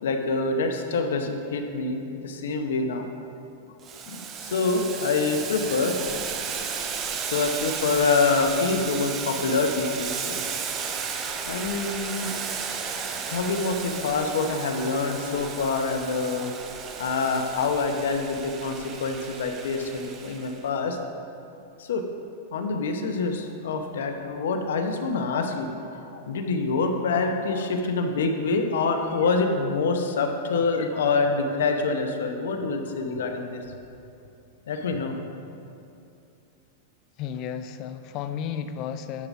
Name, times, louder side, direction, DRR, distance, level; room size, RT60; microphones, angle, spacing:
voice 1, 0.0-3.1 4.1-6.0 7.2-10.4 10.9-11.0 11.5-12.3 13.3-16.7 17.0-21.0 21.8-22.0 22.5-25.7 26.1-33.7 34.7-35.2, left 4 dB, 85° left, 5 dB, 0.9 m, -26 dB
Boiling, 3.8-20.6, right 6 dB, 25° right, 0.6 m, -34 dB
voice 2, 37.2-39.3, left 8 dB, 35° left, 10 dB, 0.4 m, -33 dB
10.5 x 6.0 x 4.1 m, 2.6 s
supercardioid pair, 165°, 0 cm